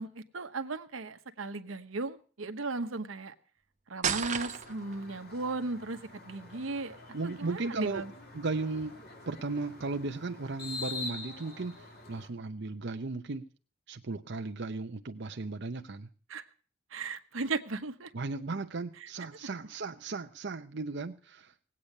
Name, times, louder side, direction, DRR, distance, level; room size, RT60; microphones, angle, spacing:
voice 1, 0.0-3.3 3.9-7.0 7.2-8.1 16.3-16.4 16.9-18.1 19.0-19.1, right 3 dB, 90° right, 9 dB, 1.0 m, -36 dB
sound 1, 4.0-5.0, right 7 dB, 40° right, 1.0 m, -31 dB
sound 2, 4.2-12.3, left 3 dB, 55° left, 3.3 m, -46 dB
voice 2, 7.1-8.1 8.3-9.0 9.3-13.4 13.9-16.1 18.1-21.5, right 3 dB, 60° right, 6 dB, 0.7 m, -36 dB
18.0 x 8.6 x 6.5 m, 0.41 s
head